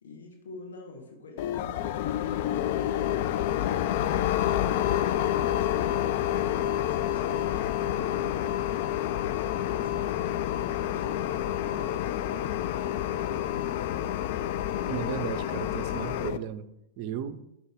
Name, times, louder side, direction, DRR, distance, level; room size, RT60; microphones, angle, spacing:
voice 1, 0.0-4.1 4.4-8.4 9.1-12.4, left 3 dB, 75° left, 2 dB, 1.1 m, -46 dB
sound 1, 1.4-16.4, left 11 dB, 55° left, 0.3 m, -28 dB
voice 2, 14.9-16.7 17.0-17.4, right 9 dB, 50° right, 13 dB, 0.5 m, -35 dB
5.9 x 5.5 x 3.6 m, 0.84 s
figure-of-eight pair, 95°, 0 cm